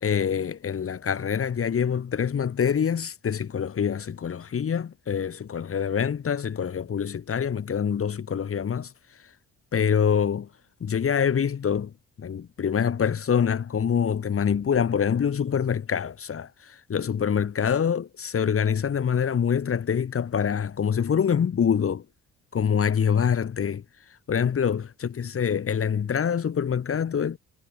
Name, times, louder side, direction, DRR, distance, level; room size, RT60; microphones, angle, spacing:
voice 1, 0.0-8.9 9.7-10.5 10.8-11.9 12.2-22.0 22.5-23.8 24.3-27.4, left 7 dB, 50° left, 3.1 m, -25 dB
cardioid pair, 90°, 30 cm